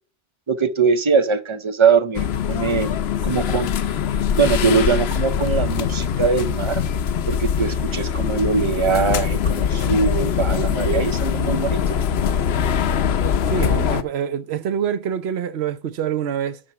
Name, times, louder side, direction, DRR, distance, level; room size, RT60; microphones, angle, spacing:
voice 1, 0.5-2.9 3.2-3.7 4.4-6.8 7.3-12.0, right 5 dB, 35° right, 0.5 m, -21 dB
sound 1, 2.1-14.0, left 7 dB, 80° left, 0.9 m, -22 dB
voice 2, 13.5-16.6, right 8 dB, 85° right, 1.0 m, -25 dB
11.5 x 4.4 x 5.9 m
omnidirectional pair, 1.0 m